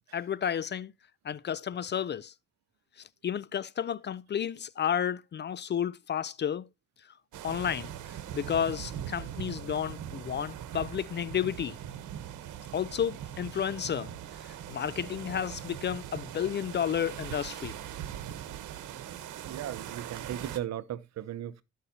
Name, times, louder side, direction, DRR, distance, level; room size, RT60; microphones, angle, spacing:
voice 1, 0.1-0.9 1.2-2.3 3.2-6.7 7.4-11.8 12.7-17.8, left 9 dB, 35° left, 0.4 m, -32 dB
sound 1, 7.3-20.6, right 10 dB, 80° right, 1.1 m, -41 dB
voice 2, 19.5-21.6, right 11 dB, 65° right, 0.8 m, -37 dB
15.5 x 5.6 x 2.8 m
cardioid pair, 90°, 30 cm